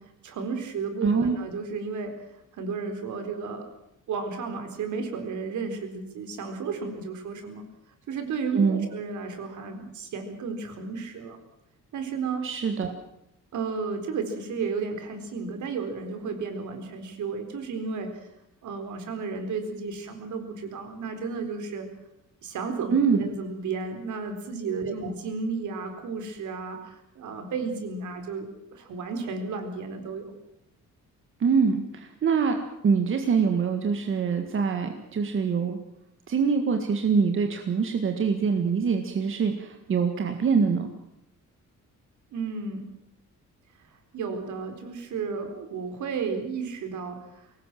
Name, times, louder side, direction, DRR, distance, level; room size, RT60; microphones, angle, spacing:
voice 1, 0.2-2.2 2.5-3.6 4.1-7.6 8.1-11.4 11.9-12.4 13.5-18.1 18.6-21.9 22.4-30.4 42.3-42.8 44.1-47.5, right 4 dB, 70° right, 6 dB, 4.2 m, -33 dB
voice 2, 1.0-1.4 8.5-8.9 12.4-12.9 22.9-23.3 24.8-25.1 31.4-32.6 32.8-35.8 36.3-40.9, right 5 dB, 40° right, 5 dB, 1.8 m, -24 dB
22.5 x 18.5 x 7.6 m, 0.82 s
cardioid pair, 160°, 31 cm